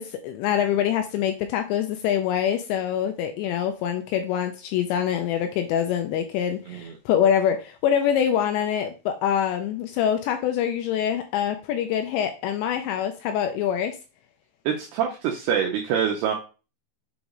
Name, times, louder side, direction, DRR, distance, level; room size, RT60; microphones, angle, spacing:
voice 1, 0.0-14.0, left 9 dB, 85° left, 6 dB, 2.6 m, -25 dB
voice 2, 14.7-16.3, right 8 dB, 90° right, 1 dB, 2.3 m, -25 dB
7.2 x 3.0 x 5.1 m, 0.33 s
omnidirectional pair, 5.6 m